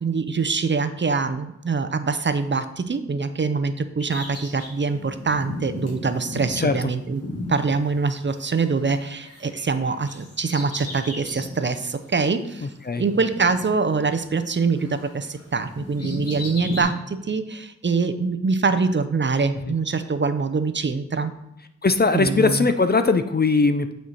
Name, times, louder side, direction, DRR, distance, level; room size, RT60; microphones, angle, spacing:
voice 1, 0.0-7.2 7.5-21.3 22.1-22.7, right 4 dB, 40° right, 10 dB, 0.5 m, -24 dB
Bird vocalization bird call bird song, 4.0-8.6 8.9-11.6 12.1-12.2 13.1-14.5 14.8-16.8, left 2 dB, 55° left, 1.7 m, -35 dB
voice 2, 12.6-13.0 19.7-19.8 21.8-23.9, left 4 dB, 35° left, 9 dB, 0.4 m, -20 dB
8.9 x 4.5 x 4.1 m, 0.83 s
wide cardioid pair, 100°, 30 cm